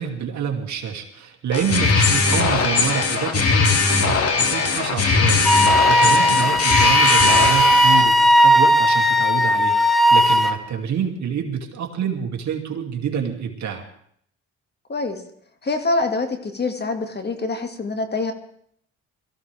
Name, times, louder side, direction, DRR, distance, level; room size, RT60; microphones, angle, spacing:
voice 1, 0.0-13.8, right 7 dB, 70° right, 2 dB, 2.5 m, -27 dB
sound 1, 1.5-8.0, left 4 dB, 50° left, 2.2 m, -19 dB
Wind instrument woodwind instrument, 5.4-10.6, equal, ahead, 1.1 m, -16 dB
voice 2, 14.9-15.2 15.6-18.3, left 3 dB, 35° left, 6 dB, 2.0 m, -25 dB
22.5 x 14.5 x 3.5 m, 0.65 s
cardioid pair, 90°, 30 cm